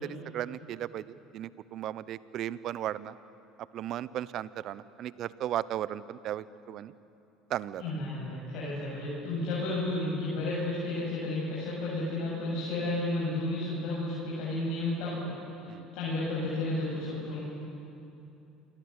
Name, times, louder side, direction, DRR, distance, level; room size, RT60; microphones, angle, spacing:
voice 1, 0.0-1.0 1.3-3.1 3.7-6.9 7.5-7.8 15.7-15.8, right 11 dB, 55° right, 17 dB, 0.9 m, -35 dB
voice 2, 7.8-15.3 15.6-17.4, left 2 dB, 65° left, -7 dB, 8.0 m, -32 dB
28.0 x 22.5 x 8.3 m, 2.8 s
hypercardioid pair, 70°, 0 cm